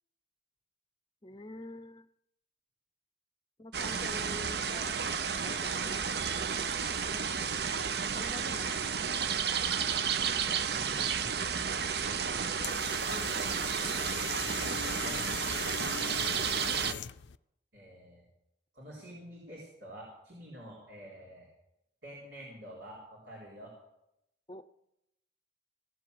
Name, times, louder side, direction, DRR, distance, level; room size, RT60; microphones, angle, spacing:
voice 1, 1.2-2.1 3.6-5.0 5.4-7.3 8.0-9.0 12.3-13.7 24.5-24.6, left 2 dB, 25° left, 13 dB, 0.6 m, -48 dB
sound 1, 3.7-16.9, right 6 dB, 60° right, 0.7 m, -32 dB
voice 2, 10.4-11.8 15.0-15.5 17.7-18.2 18.7-21.5 22.0-23.7, equal, 85° right, -4 dB, 3.9 m, -48 dB
sound 2, 12.0-17.4, left 9 dB, 75° left, 0.4 m, -41 dB
16.0 x 7.5 x 8.0 m, 0.84 s
head